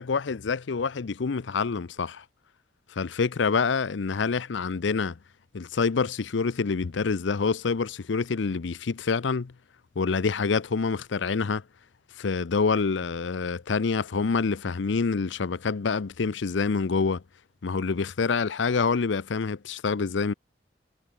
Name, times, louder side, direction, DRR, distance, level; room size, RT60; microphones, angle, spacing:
voice 1, 0.0-2.2 3.0-5.2 5.5-9.5 10.0-11.6 12.2-17.2 17.6-20.3, left 5 dB, 85° left, 0.6 m, -26 dB
head